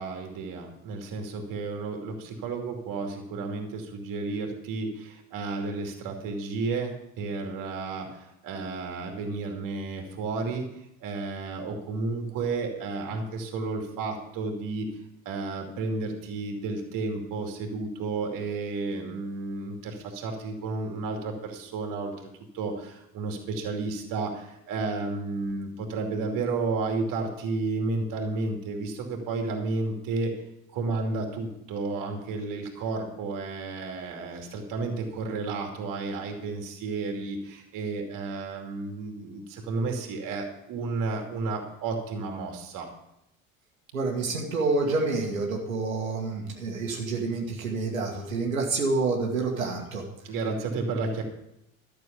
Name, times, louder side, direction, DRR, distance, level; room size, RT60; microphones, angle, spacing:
voice 1, 0.0-14.9 15.2-22.3 22.5-30.3 30.7-42.9 50.2-51.2, right 3 dB, 50° right, 3 dB, 2.6 m, -32 dB
voice 2, 43.9-50.0, right 3 dB, 80° right, 0 dB, 1.7 m, -28 dB
12.5 x 6.8 x 6.8 m, 0.83 s
figure-of-eight pair, 60°, 40 cm